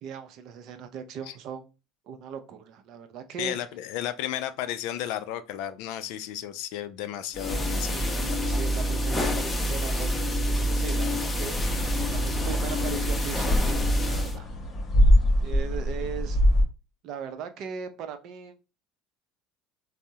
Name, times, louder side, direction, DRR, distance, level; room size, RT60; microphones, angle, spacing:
voice 1, 0.0-1.7 2.1-3.6 7.9-14.5 15.4-16.4 17.0-18.6, right 7 dB, 60° right, 0.5 m, -39 dB
voice 2, 3.4-8.4, left 11 dB, 75° left, 0.3 m, -34 dB
sound 1, 7.3-14.4, equal, 15° left, 0.6 m, -27 dB
sound 2, 11.4-16.6, equal, 40° left, 0.8 m, -24 dB
3.4 x 2.0 x 2.7 m
supercardioid pair, 90°, 0 cm